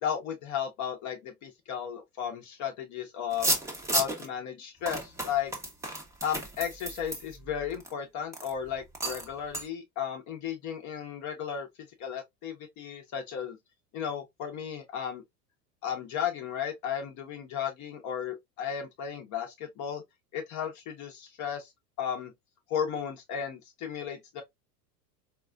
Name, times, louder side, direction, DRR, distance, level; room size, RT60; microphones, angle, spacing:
voice 1, 0.0-3.6 3.9-5.5 6.2-11.7 12.0-13.6 13.9-15.2 15.8-20.0 20.3-21.7 22.0-22.3 22.7-24.4, left 8 dB, 35° left, 0.8 m, -34 dB
sound 1, 3.3-4.3 4.9-7.9 8.3-8.5 8.9-9.3 9.5-9.7, right 1 dB, 5° right, 0.7 m, -32 dB
3.9 x 2.4 x 2.2 m
hypercardioid pair, 90°, 49 cm